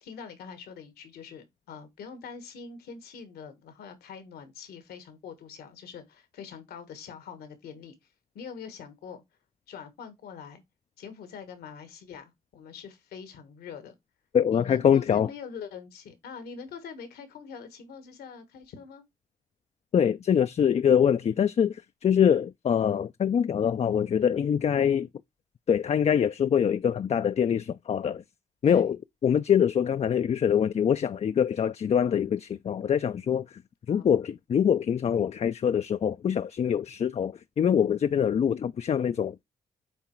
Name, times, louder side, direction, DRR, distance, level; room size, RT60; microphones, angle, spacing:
voice 1, 0.0-7.9 8.3-9.2 9.7-10.6 11.0-13.9 14.5-19.0 28.6-28.9 31.6-31.7 33.9-34.0, left 6 dB, 85° left, 1.5 m, -44 dB
voice 2, 14.3-15.3 19.9-25.1 25.7-28.2 28.6-33.6 33.9-39.4, left 8 dB, 45° left, 0.4 m, -24 dB
8.4 x 3.0 x 4.4 m
supercardioid pair, 50°, 16 cm